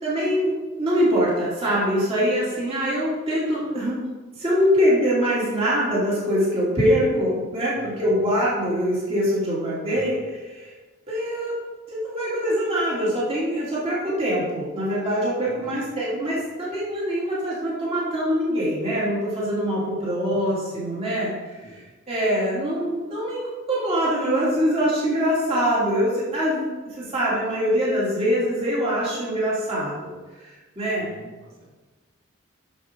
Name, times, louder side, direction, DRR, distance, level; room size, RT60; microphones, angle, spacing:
voice 1, 0.0-4.0 4.4-10.2 10.5-10.7 11.1-11.5 11.9-21.3 22.1-23.4 23.7-26.7 27.0-30.1 30.4-30.5 30.7-31.1, equal, 25° right, -7 dB, 3.0 m, -23 dB
voice 2, 7.7-8.1 9.9-10.2 15.5-15.8 21.6-21.8 31.0-31.7, right 1 dB, 85° right, -5 dB, 2.7 m, -45 dB
11.0 x 6.8 x 3.8 m, 1.2 s
head